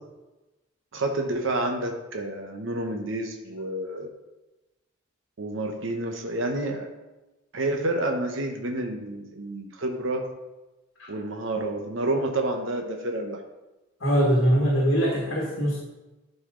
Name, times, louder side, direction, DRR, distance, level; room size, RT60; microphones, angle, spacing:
voice 1, 0.9-4.1 5.4-6.9 7.5-10.3 11.1-13.4, right 2 dB, 70° right, 3 dB, 0.9 m, -29 dB
voice 2, 14.0-15.8, equal, 70° left, -4 dB, 1.7 m, -22 dB
11.5 x 4.3 x 3.7 m, 1.1 s
head